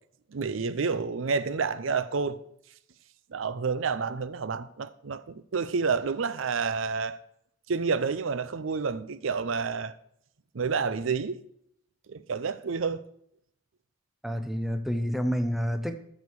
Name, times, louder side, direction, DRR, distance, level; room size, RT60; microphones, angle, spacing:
voice 1, 0.3-2.4 3.3-7.2 7.7-10.0 10.5-11.4 12.1-13.0, right 5 dB, 85° right, 0.5 m, -29 dB
voice 2, 14.2-16.0, equal, ahead, 0.7 m, -28 dB
13.5 x 6.4 x 4.7 m
head